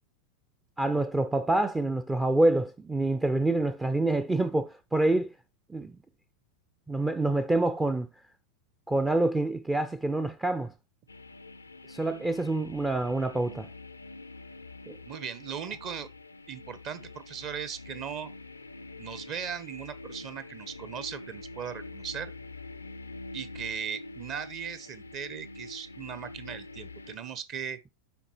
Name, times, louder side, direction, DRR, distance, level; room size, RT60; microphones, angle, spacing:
voice 1, 0.8-5.3 5.7-6.0 6.9-8.1 8.9-10.7 11.9-13.7 14.9-15.0, right 2 dB, 10° right, 0.4 m, -27 dB
sound 1, 11.1-27.2, left 2 dB, 80° left, 0.5 m, -45 dB
voice 2, 15.1-16.1 16.5-18.3 19.0-22.3 23.3-27.8, right 8 dB, 35° right, 0.8 m, -38 dB
11.5 x 4.1 x 2.9 m
figure-of-eight pair, 90°, 0 cm